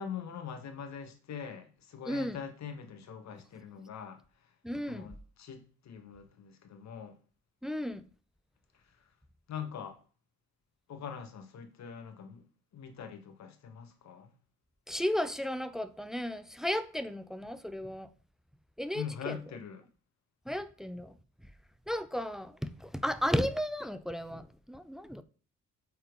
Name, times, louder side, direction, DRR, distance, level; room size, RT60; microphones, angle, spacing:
voice 1, 0.0-4.2 4.8-7.1 9.5-10.0 10.9-12.4 12.7-14.3 18.9-19.8, left 7 dB, 65° left, 1.7 m, -43 dB
voice 2, 2.1-2.4 4.6-5.1 7.6-8.0 14.9-18.1 18.8-19.4 20.5-21.1 21.9-25.2, equal, ahead, 0.6 m, -34 dB
8.3 x 4.4 x 5.3 m
cardioid pair, 90°, 30 cm